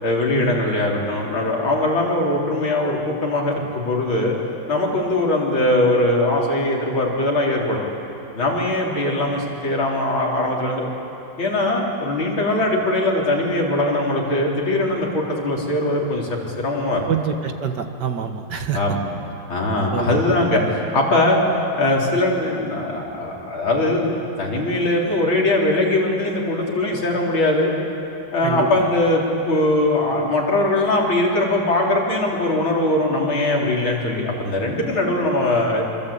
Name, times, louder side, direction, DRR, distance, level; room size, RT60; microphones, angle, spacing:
voice 1, 0.0-4.3 4.7-7.8 8.3-10.9 11.4-17.1 18.7-19.0 19.5-21.4 21.8-24.1 24.4-27.7 28.3-35.8, left 1 dB, 80° left, -2 dB, 4.7 m, -21 dB
voice 2, 17.1-18.8 19.9-20.2 28.4-28.9, right 7 dB, 60° right, 6 dB, 2.0 m, -26 dB
26.0 x 25.5 x 8.7 m, 2.9 s
omnidirectional pair, 2.2 m